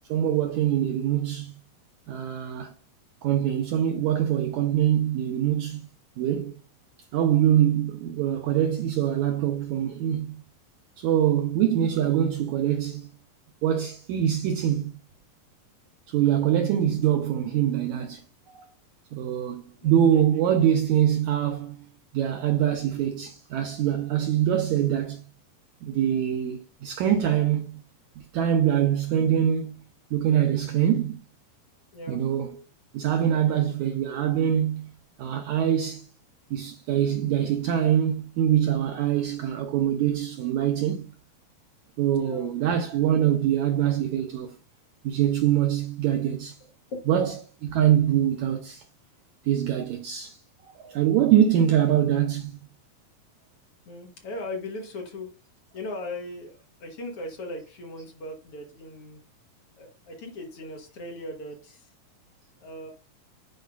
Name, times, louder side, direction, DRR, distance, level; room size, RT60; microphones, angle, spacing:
voice 1, 0.1-1.6 2.1-2.7 3.2-5.9 6.2-6.5 7.1-10.4 11.0-13.1 13.6-14.9 16.1-18.2 18.5-18.6 19.1-21.9 22.1-25.2 25.8-27.8 28.2-29.7 30.1-31.2 32.1-32.6 32.9-34.9 35.2-36.1 36.5-41.1 42.0-44.5 45.0-46.6 47.0-48.8 49.4-50.4 50.8-52.6, right 10 dB, 85° right, 1.7 m, -24 dB
voice 2, 19.8-20.4 31.9-32.2 42.2-42.5 46.9-47.2 53.9-55.3 55.7-56.5 56.8-59.2 59.8-61.9 62.6-62.9, left 1 dB, 55° left, 1.8 m, -38 dB
10.5 x 4.6 x 2.3 m
omnidirectional pair, 4.0 m